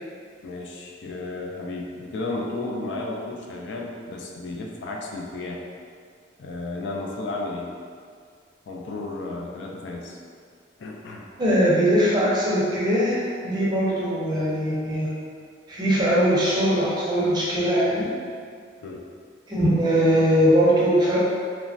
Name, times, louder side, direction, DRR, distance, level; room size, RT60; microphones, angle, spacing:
voice 1, 0.4-5.6 6.4-7.7 8.7-10.2 10.8-11.3 18.8-19.0, left 2 dB, 65° left, -1 dB, 0.3 m, -33 dB
voice 2, 11.4-15.1 15.7-18.1 19.5-21.2, equal, 20° right, -7 dB, 0.5 m, -21 dB
3.0 x 2.1 x 2.5 m, 2.1 s
head